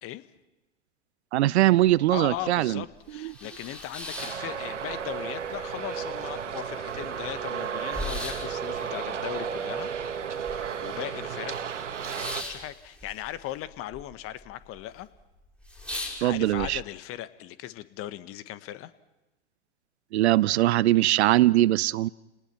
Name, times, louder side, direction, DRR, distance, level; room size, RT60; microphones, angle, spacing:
voice 1, 1.3-2.8 3.2-3.3 16.2-16.8 20.1-22.1, right 15 dB, 65° right, 22 dB, 0.7 m, -21 dB
sound 1, 1.9-2.0 2.4-2.5 2.9-5.1 5.4-6.2 6.5-6.6 6.8-10.9 11.2-14.0 14.3-14.8 15.2-15.3 15.6-16.7, left 1 dB, 5° left, 6.1 m, -39 dB
voice 2, 2.1-9.9 10.5-11.6 12.3-15.1 16.2-18.9, left 13 dB, 40° left, 14 dB, 1.5 m, -38 dB
Traffic noise roadway noise, 4.2-12.4, right 7 dB, 80° right, 1.8 m, -33 dB
30.0 x 19.5 x 6.0 m, 1.0 s
hypercardioid pair, 100°, 36 cm